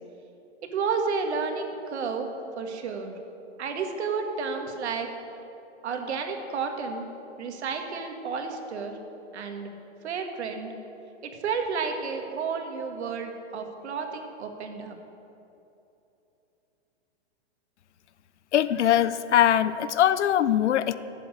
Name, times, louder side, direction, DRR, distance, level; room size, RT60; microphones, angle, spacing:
voice 1, 0.6-3.2 3.6-5.1 5.8-7.1 7.4-9.0 9.3-9.7 10.0-10.7 11.2-15.0, right 5 dB, 75° right, 4 dB, 1.8 m, -31 dB
voice 2, 18.5-21.0, left 11 dB, 80° left, 15 dB, 0.7 m, -22 dB
10.0 x 7.7 x 9.4 m, 2.9 s
hypercardioid pair, 140°, 34 cm